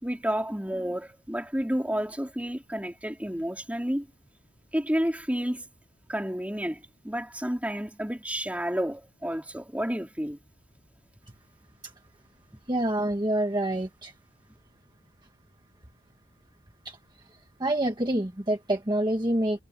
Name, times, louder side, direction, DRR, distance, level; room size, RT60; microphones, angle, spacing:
voice 1, 0.0-4.1 4.7-5.7 6.1-10.4, equal, 10° right, 3.7 m, -30 dB
voice 2, 12.7-14.1 16.8-17.0 17.6-19.6, right 1 dB, 25° right, 1.5 m, -27 dB
head